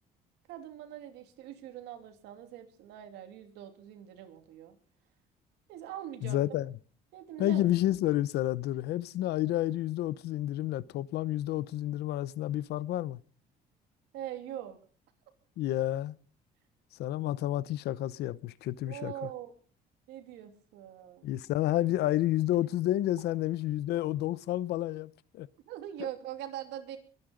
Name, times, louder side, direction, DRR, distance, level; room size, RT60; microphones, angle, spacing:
voice 1, 0.5-4.7 5.7-6.4 7.1-7.7 14.1-14.8 18.9-19.5 20.1-21.3 25.7-27.0, right 11 dB, 90° right, 2.7 m, -42 dB
voice 2, 6.2-6.7 7.4-13.2 15.6-16.2 17.0-19.1 21.2-25.5, left 14 dB, 75° left, 0.8 m, -30 dB
23.0 x 10.0 x 5.2 m
cardioid pair, 110°, 17 cm